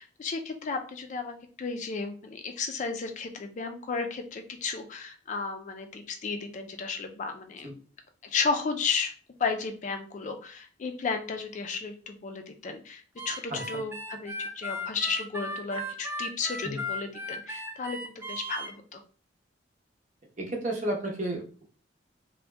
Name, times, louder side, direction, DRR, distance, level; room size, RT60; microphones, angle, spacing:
voice 1, 0.0-7.7 8.2-9.1 9.4-19.0, left 4 dB, 40° left, 6 dB, 0.4 m, -33 dB
Harmonica, 13.2-18.7, equal, 15° right, 0.5 m, -36 dB
voice 2, 13.5-13.8 16.6-16.8 20.4-21.6, right 1 dB, 40° right, 1 dB, 0.8 m, -32 dB
2.7 x 2.1 x 3.2 m, 0.39 s
head